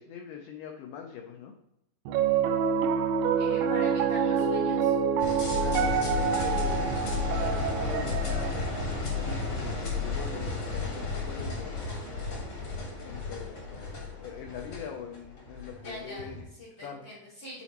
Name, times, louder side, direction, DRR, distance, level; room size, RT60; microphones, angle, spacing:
voice 1, 0.0-1.5 5.6-8.6 9.1-12.1 13.0-16.5 16.8-17.1, left 7 dB, 85° left, 3 dB, 1.9 m, -42 dB
Piano, 2.1-12.4, right 7 dB, 85° right, 2.0 m, -28 dB
voice 2, 3.4-5.0 12.7-13.5 15.7-17.6, left 1 dB, 40° left, -6 dB, 0.8 m, -44 dB
sound 1, 5.2-16.4, left 4 dB, 55° left, 1.2 m, -33 dB
10.0 x 4.1 x 2.9 m, 0.84 s
omnidirectional pair, 4.5 m